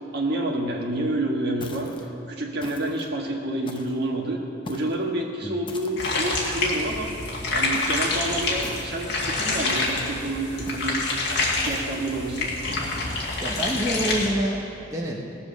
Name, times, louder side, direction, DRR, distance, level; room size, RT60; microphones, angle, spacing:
voice 1, 0.1-1.9 2.3-4.4 4.7-7.1 7.5-11.0 11.5-12.5, right 1 dB, 55° right, 1 dB, 1.5 m, -28 dB
sound 1, 1.6-2.1 2.6-3.1 3.7-4.1 4.6-5.0 5.7-6.2 7.7-8.1 8.6-9.1 9.7-10.1 10.7-11.0 11.6-12.0, left 2 dB, 25° left, 0.8 m, -41 dB
sound 2, 6.0-14.3, left 2 dB, 60° left, 2.3 m, -27 dB
voice 2, 13.4-15.2, right 1 dB, 15° right, -2 dB, 1.0 m, -27 dB
17.5 x 7.3 x 6.5 m, 2.9 s
head